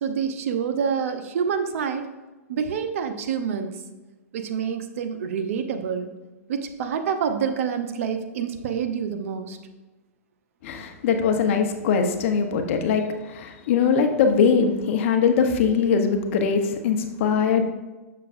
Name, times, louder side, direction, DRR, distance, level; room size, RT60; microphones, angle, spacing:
voice 1, 0.0-2.1 2.5-3.7 4.3-6.1 6.5-9.6, right 7 dB, 60° right, 7 dB, 0.7 m, -27 dB
voice 2, 10.6-13.0 13.3-17.6, left 6 dB, 55° left, 6 dB, 0.9 m, -21 dB
6.9 x 6.7 x 2.5 m, 1.2 s
hypercardioid pair, 135°, 8 cm